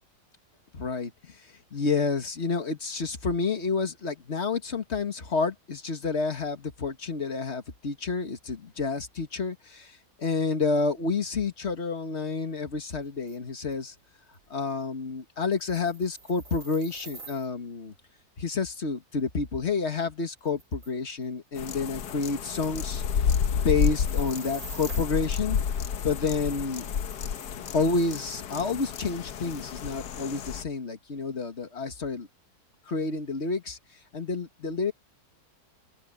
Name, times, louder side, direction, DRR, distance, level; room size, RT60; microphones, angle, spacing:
voice 1, 0.7-13.9 14.5-17.9 18.4-23.0 23.5-25.6 26.0-26.9 27.7-32.3 32.9-33.8 34.1-34.9, left 4 dB, 45° left, 2.0 m, -29 dB
sound 1, 13.3-13.4 13.7-13.8 14.3-14.4 14.6-14.8 15.5-17.5 19.9-20.0 20.4-20.9 21.2-21.3 21.6-22.2 22.5-22.8 24.0-25.2 26.3-27.5, right 3 dB, 50° right, 5.0 m, -46 dB
sound 2, 21.6-30.6, left 7 dB, 90° left, 1.6 m, -30 dB
open air
omnidirectional pair, 1.7 m